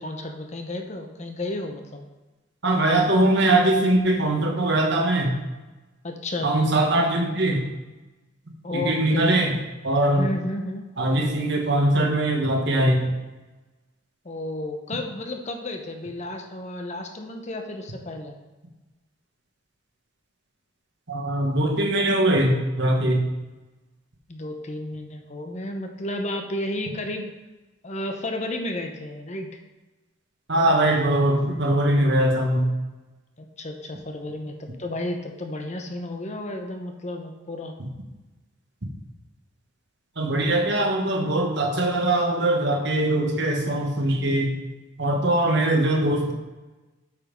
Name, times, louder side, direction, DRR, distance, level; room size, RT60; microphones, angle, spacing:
voice 1, 0.0-2.0 6.0-6.5 8.6-9.3 10.1-10.8 14.2-18.3 24.3-27.3 27.8-29.5 33.4-37.7, left 1 dB, 35° left, 4 dB, 0.9 m, -32 dB
voice 2, 2.6-5.3 6.4-7.6 8.7-9.5 9.8-10.2 11.0-13.0 21.1-23.2 30.5-32.7 40.2-44.5 45.0-46.3, right 1 dB, 60° right, 2 dB, 1.4 m, -21 dB
8.1 x 5.4 x 5.3 m, 1.1 s
head